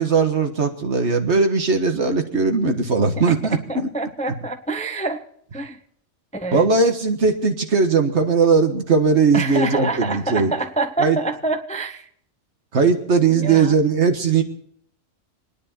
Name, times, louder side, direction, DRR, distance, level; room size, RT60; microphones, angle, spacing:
voice 1, 0.0-3.9 6.5-10.5 11.0-11.2 12.7-14.4, right 4 dB, 60° right, 5 dB, 1.7 m, -19 dB
voice 2, 3.3-5.3 5.5-5.8 6.3-6.7 9.3-12.1 13.3-13.7, right 2 dB, 5° left, 7 dB, 0.6 m, -27 dB
27.0 x 10.0 x 4.4 m, 0.64 s
omnidirectional pair, 1.3 m